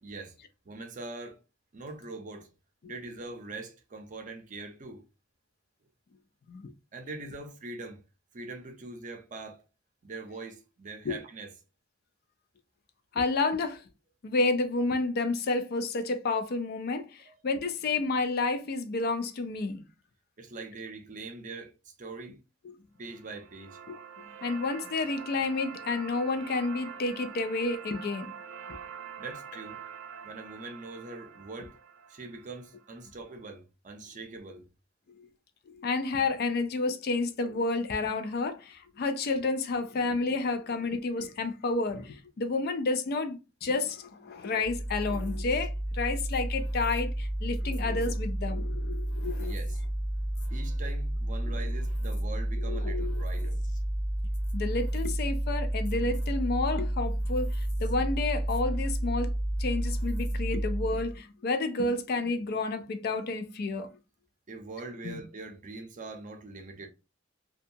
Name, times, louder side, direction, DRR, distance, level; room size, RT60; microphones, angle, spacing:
voice 1, 0.0-0.4 0.7-1.4 1.7-2.5 2.9-5.0 6.9-8.0 8.3-9.6 10.0-11.5 17.3-17.4 20.4-22.4 23.0-23.8 29.2-29.8 30.2-31.7 32.1-34.7 49.4-49.8 50.5-53.6 64.5-66.9, right 3 dB, 40° right, 0.6 m, -42 dB
voice 2, 13.1-13.8 14.2-19.8 22.6-22.8 23.9-24.0 24.4-28.3 28.7-28.8 35.1-35.3 35.7-49.5 51.6-51.7 52.6-53.2 54.5-59.3 59.6-63.9 65.0-65.2, left 3 dB, 50° left, 0.4 m, -30 dB
sound 1, 23.0-33.1, right 7 dB, 90° right, 0.4 m, -45 dB
sound 2, 44.6-61.2, right 1 dB, 70° left, 0.9 m, -31 dB
2.6 x 2.3 x 2.6 m
head